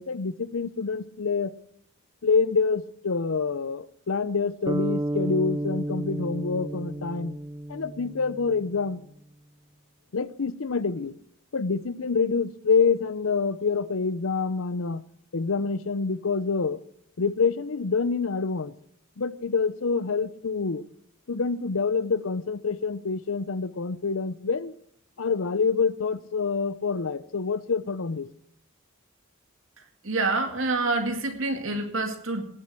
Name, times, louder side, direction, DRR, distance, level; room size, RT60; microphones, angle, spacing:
voice 1, 0.0-1.5 2.2-7.3 7.7-9.0 10.1-11.1 11.5-15.0 15.3-16.8 17.2-18.7 19.2-20.8 21.3-24.7 25.2-28.3, left 5 dB, 75° left, 17 dB, 0.7 m, -26 dB
sound 1, 4.7-8.9, right 1 dB, 20° right, 0.7 m, -32 dB
voice 2, 30.0-32.4, right 3 dB, 70° right, 6 dB, 2.1 m, -27 dB
17.5 x 7.6 x 6.2 m, 0.67 s
head